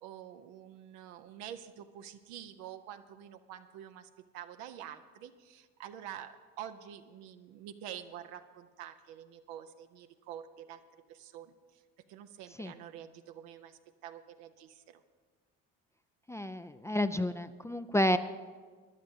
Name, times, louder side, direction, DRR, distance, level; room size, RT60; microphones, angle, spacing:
voice 1, 0.0-11.5 12.1-15.0, right 10 dB, 70° right, 8 dB, 0.8 m, -47 dB
voice 2, 16.3-18.2, left 1 dB, 10° left, 10 dB, 0.4 m, -30 dB
22.5 x 11.5 x 2.8 m, 1.5 s
hypercardioid pair, 55°, 39 cm